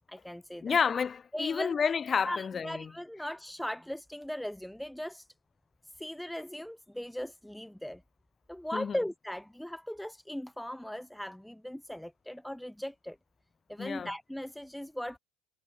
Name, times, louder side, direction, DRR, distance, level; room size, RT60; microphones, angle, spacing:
voice 1, 0.1-0.8 1.3-1.8 2.2-5.3 6.0-8.0 8.5-13.2 13.7-15.2, equal, 5° left, 1.4 m, -38 dB
voice 2, 0.6-2.9 8.7-9.0 13.8-14.1, left 6 dB, 30° left, 6.9 m, -30 dB
figure-of-eight pair, 65°, 0 cm